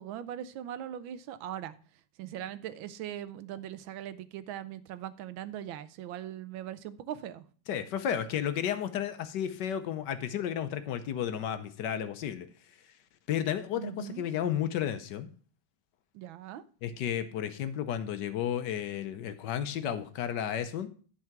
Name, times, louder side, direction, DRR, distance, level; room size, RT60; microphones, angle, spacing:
voice 1, 0.0-1.7 2.2-7.4 13.7-14.2 16.1-16.6, right 11 dB, 85° right, 14 dB, 1.5 m, -40 dB
voice 2, 7.7-12.5 13.3-15.3 16.8-20.9, left 9 dB, 70° left, 11 dB, 1.3 m, -32 dB
10.5 x 4.7 x 5.9 m, 0.42 s
omnidirectional pair, 2.1 m